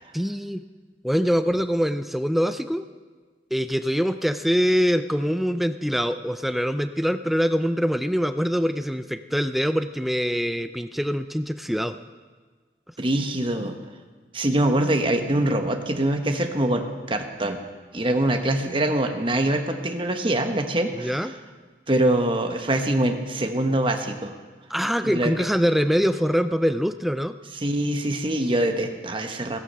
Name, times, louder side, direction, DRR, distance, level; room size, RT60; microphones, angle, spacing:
voice 1, 0.1-0.6 1.0-2.8 3.5-11.9 20.9-21.3 24.7-27.4, equal, ahead, 10 dB, 0.4 m, -24 dB
voice 2, 13.0-13.7 14.3-17.6 17.9-21.3 21.9-24.3 25.0-25.3 27.6-29.6, right 1 dB, 30° right, 5 dB, 1.2 m, -24 dB
16.0 x 14.0 x 5.5 m, 1.4 s
head